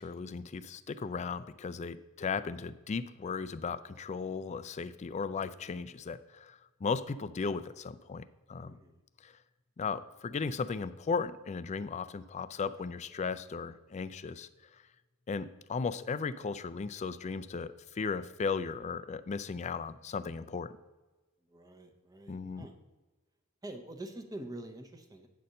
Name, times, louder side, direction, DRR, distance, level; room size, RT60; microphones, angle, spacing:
voice 1, 0.0-8.8 9.2-9.3 9.8-14.5 15.3-20.7 22.3-22.7, left 5 dB, 30° left, 13 dB, 0.3 m, -36 dB
voice 2, 8.6-9.0 21.5-22.7 23.6-25.3, right 1 dB, 15° right, 4 dB, 0.8 m, -46 dB
9.3 x 4.2 x 6.4 m, 1.2 s
head